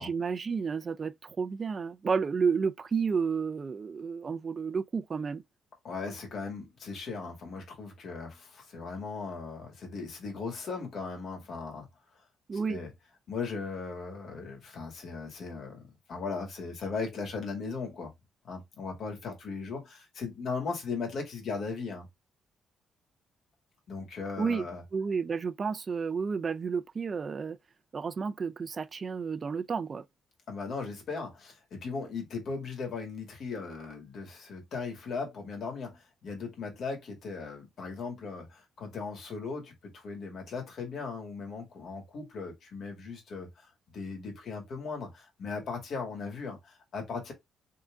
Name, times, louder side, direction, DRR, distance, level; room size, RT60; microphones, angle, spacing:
voice 1, 0.0-5.4 12.5-12.8 24.4-24.7 24.9-27.6 27.9-30.0, right 5 dB, 40° right, 0.5 m, -31 dB
voice 2, 5.8-11.9 12.7-12.9 13.3-18.1 18.4-22.1 23.9-24.8 30.5-43.7 43.9-47.3, left 4 dB, 65° left, 2.2 m, -38 dB
3.8 x 3.8 x 3.5 m
cardioid pair, 90°, 0 cm